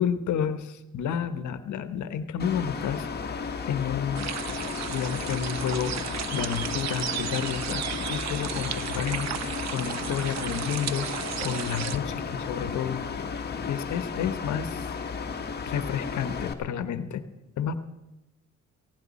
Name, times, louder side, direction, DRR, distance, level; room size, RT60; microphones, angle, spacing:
voice 1, 0.0-3.1 3.3-4.3 4.9-5.9 6.3-13.0 13.3-15.0 15.7-17.2 17.6-17.8, left 8 dB, 75° left, 11 dB, 1.2 m, -30 dB
Mechanical fan, 2.4-16.5, left 5 dB, 35° left, 1.5 m, -34 dB
sound 1, 4.1-12.0, right 10 dB, 60° right, 0.8 m, -34 dB
sound 2, 4.3-13.9, left 6 dB, 50° left, 1.3 m, -45 dB
17.5 x 16.0 x 4.2 m, 1.0 s
cardioid pair, 90°, 30 cm